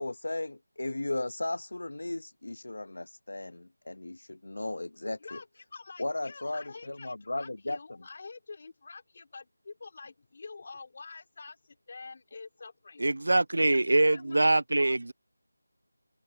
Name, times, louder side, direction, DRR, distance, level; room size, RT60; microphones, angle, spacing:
voice 1, 0.0-5.4 6.0-7.8, left 2 dB, 70° left, 1.0 m, -35 dB
voice 2, 5.2-13.0 13.7-15.0, left 4 dB, 40° left, 3.7 m, -47 dB
voice 3, 13.0-15.1, right 2 dB, 70° right, 0.6 m, -24 dB
open air
figure-of-eight pair, 170°, 0 cm